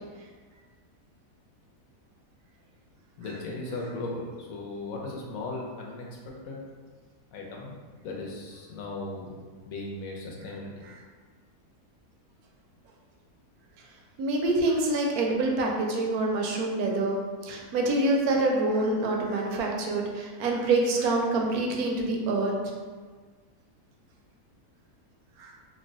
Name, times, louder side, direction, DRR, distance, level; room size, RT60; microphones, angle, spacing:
voice 1, 3.2-6.6 7.3-7.7 8.0-10.7, left 2 dB, 65° left, -2 dB, 1.0 m, -37 dB
voice 2, 14.2-22.5 25.4-25.5, right 2 dB, 70° right, 0 dB, 1.0 m, -26 dB
3.0 x 2.1 x 3.8 m, 1.5 s
omnidirectional pair, 1.8 m